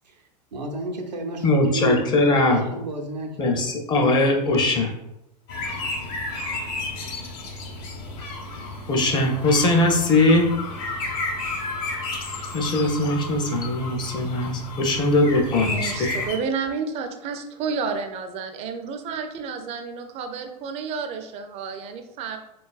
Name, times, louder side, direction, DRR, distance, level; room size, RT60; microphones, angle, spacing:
voice 1, 0.5-3.7, right 2 dB, 85° right, 1 dB, 0.6 m, -32 dB
voice 2, 1.4-2.6 3.4-4.9 8.9-10.6 12.5-16.2, left 2 dB, 20° left, 2 dB, 0.5 m, -20 dB
sound 1, 5.5-16.4, left 2 dB, 50° left, 0.8 m, -32 dB
voice 3, 15.6-22.4, right 5 dB, 30° right, 6 dB, 0.4 m, -31 dB
3.8 x 2.3 x 2.3 m, 0.86 s
hypercardioid pair, 95°, 21 cm